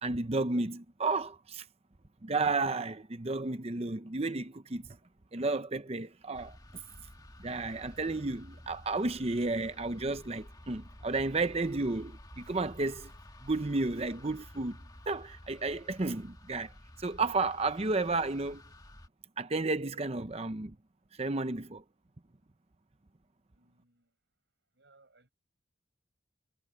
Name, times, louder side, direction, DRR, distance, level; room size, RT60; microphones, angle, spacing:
voice 1, 0.0-1.6 2.2-4.9 5.3-6.6 7.4-13.1 13.4-14.8 15.1-16.7 17.0-18.6 19.4-20.8 21.2-21.8, right 3 dB, 30° right, 0.8 m, -32 dB
sound 1, 6.3-19.1, left 1 dB, 20° left, 1.9 m, -52 dB
voice 2, 23.5-24.1 24.8-25.3, right 3 dB, 60° right, 6.4 m, -64 dB
head